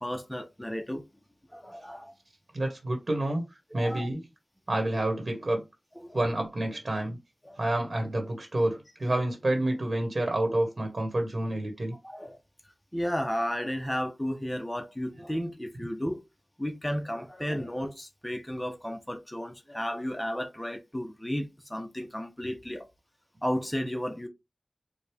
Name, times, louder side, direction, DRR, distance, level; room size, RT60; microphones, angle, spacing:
voice 1, 0.0-1.0 1.5-2.1 3.7-4.1 5.9-6.2 7.4-7.6 12.0-12.4 12.9-16.2 16.6-22.9 23.4-24.3, equal, 10° left, 0.7 m, -33 dB
voice 2, 2.5-3.4 3.7-4.2 4.7-5.6 6.1-7.2 7.6-11.9, right 1 dB, 60° right, 1.2 m, -28 dB
4.6 x 2.2 x 3.4 m
wide cardioid pair, 45°, 0 cm